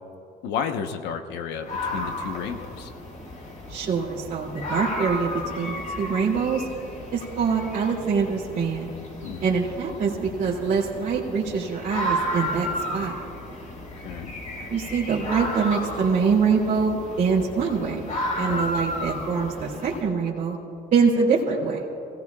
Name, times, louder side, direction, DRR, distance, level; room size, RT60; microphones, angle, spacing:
voice 1, 0.4-2.9 9.2-9.4 14.0-14.3 18.5-18.7, left 7 dB, 85° left, 7 dB, 1.0 m, -32 dB
sound 1, 1.6-20.0, equal, 50° left, 3.7 m, -33 dB
voice 2, 3.7-6.7 7.1-8.9 9.4-13.1 14.7-18.1 18.3-20.6 20.9-21.9, right 5 dB, 50° right, -6 dB, 2.5 m, -24 dB
29.0 x 17.5 x 2.3 m, 2.8 s
cardioid pair, 110°, 17 cm